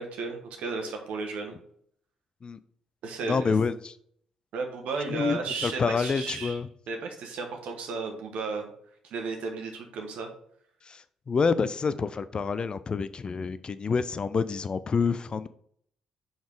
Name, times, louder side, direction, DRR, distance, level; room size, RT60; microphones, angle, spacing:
voice 1, 0.0-1.6 3.0-3.5 4.5-6.6 6.9-8.7 9.0-10.3, right 4 dB, 65° right, 3 dB, 1.1 m, -34 dB
voice 2, 3.3-3.9 5.1-6.7 10.9-15.5, left 5 dB, 35° left, 14 dB, 0.4 m, -28 dB
5.1 x 4.0 x 4.7 m, 0.64 s
figure-of-eight pair, 40°, 3 cm